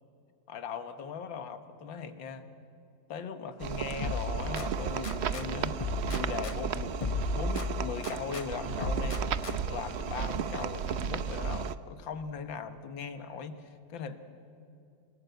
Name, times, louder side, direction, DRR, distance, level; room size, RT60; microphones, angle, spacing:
voice 1, 0.5-2.5 3.1-7.0 7.4-9.3 9.7-13.6 13.9-14.2, left 6 dB, 85° left, 10 dB, 2.0 m, -39 dB
sound 1, 3.6-11.8, right 7 dB, 70° right, 0.6 m, -34 dB
sound 2, 4.0-5.5 5.8-8.5 8.8-9.8, left 2 dB, 35° left, 0.5 m, -35 dB
27.5 x 18.0 x 8.2 m, 2.6 s
omnidirectional pair, 2.0 m